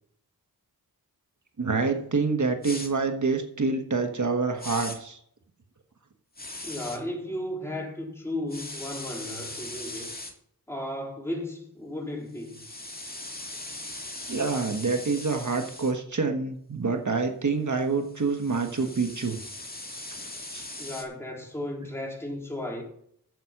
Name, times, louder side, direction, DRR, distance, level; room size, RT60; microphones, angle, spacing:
voice 1, 1.6-5.2 14.3-19.4 20.5-20.7, right 4 dB, 50° right, 5 dB, 1.4 m, -27 dB
sound 1, 2.6-2.9 4.6-5.0 6.4-7.0 8.5-10.3 12.4-15.9 18.0-21.0, left 2 dB, 25° left, 2.2 m, -39 dB
voice 2, 6.6-10.1 10.7-12.6 20.8-22.8, left 1 dB, 5° left, -2 dB, 3.7 m, -34 dB
9.5 x 8.0 x 5.9 m, 0.66 s
cardioid pair, 50°, 39 cm